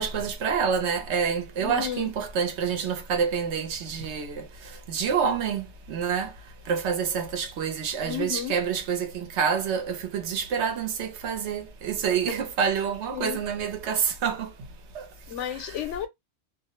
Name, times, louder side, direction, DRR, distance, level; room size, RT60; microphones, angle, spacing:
voice 1, 0.0-6.3 6.7-14.5 14.9-15.1 15.5-15.7, right 7 dB, 70° right, 0.9 m, -28 dB
voice 2, 1.6-2.1 8.0-8.6 12.3-12.4 13.1-13.4 15.3-16.1, left 10 dB, 80° left, 0.9 m, -32 dB
2.3 x 2.0 x 2.8 m
omnidirectional pair, 1.2 m